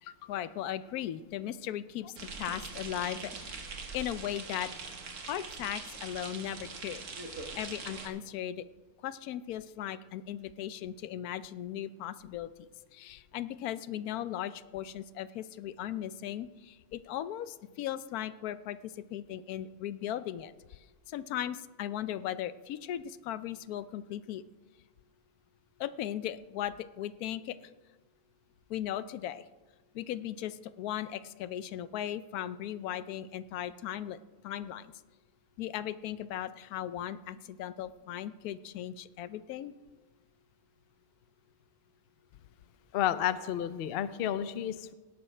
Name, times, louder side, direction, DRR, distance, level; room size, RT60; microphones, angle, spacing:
voice 1, 0.0-3.7 3.9-4.7 5.3-8.6 9.0-12.5 12.9-24.4 25.8-27.6 28.7-29.5 29.9-34.2 34.4-34.9 35.6-39.7, left 11 dB, 85° left, 14 dB, 1.1 m, -37 dB
sound 1, 2.2-8.1, right 4 dB, 80° right, 2.0 m, -42 dB
voice 2, 42.9-44.9, left 11 dB, 60° left, 13 dB, 0.6 m, -31 dB
17.5 x 12.5 x 3.3 m, 1.2 s
omnidirectional pair, 1.6 m